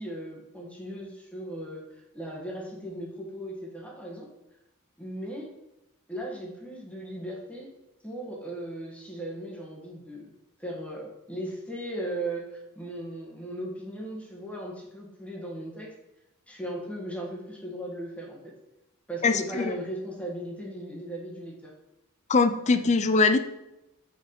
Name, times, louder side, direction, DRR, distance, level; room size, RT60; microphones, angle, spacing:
voice 1, 0.0-4.3 5.0-5.5 6.1-7.7 8.0-10.3 10.6-15.9 16.5-18.5 19.1-21.7, right 1 dB, 5° left, -2 dB, 1.2 m, -37 dB
voice 2, 19.2-19.7 22.3-23.4, left 4 dB, 30° left, 9 dB, 0.4 m, -22 dB
4.7 x 4.6 x 5.1 m, 0.95 s
head